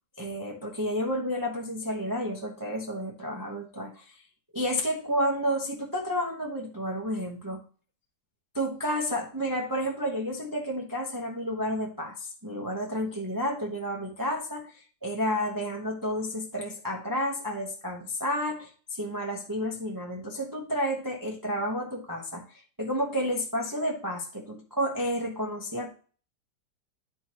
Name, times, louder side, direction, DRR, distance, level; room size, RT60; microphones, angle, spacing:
voice 1, 0.2-4.0 4.5-7.6 8.5-14.7 15.0-22.4 22.8-25.9, equal, 15° right, -1 dB, 0.9 m, -31 dB
10.5 x 4.5 x 3.0 m, 0.39 s
omnidirectional pair, 1.8 m